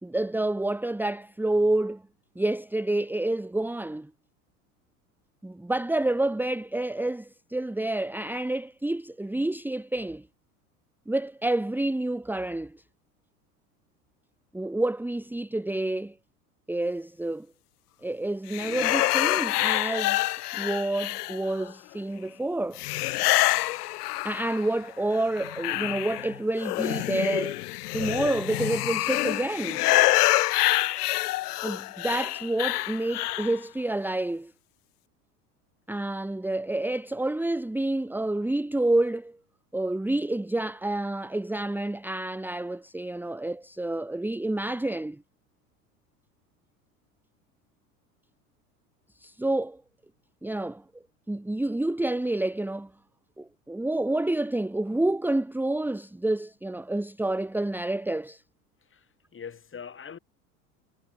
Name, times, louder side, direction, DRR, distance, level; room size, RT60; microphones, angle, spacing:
voice 1, 0.0-2.0 2.3-4.1 5.4-10.3 11.1-12.8 14.5-16.1 16.7-17.5 18.0-22.8 24.2-27.6 27.9-29.9 31.6-34.5 35.9-39.4 39.7-45.2 49.2-49.8 50.4-50.8 51.3-52.9 53.4-58.4, right 2 dB, 5° right, 1.6 m, -28 dB
sound 1, 18.5-21.7 22.8-24.8 25.1-33.6, left 18 dB, 80° left, 0.7 m, -26 dB
voice 2, 58.8-60.2, left 7 dB, 25° left, 5.1 m, -43 dB
hypercardioid pair, 90°, 46 cm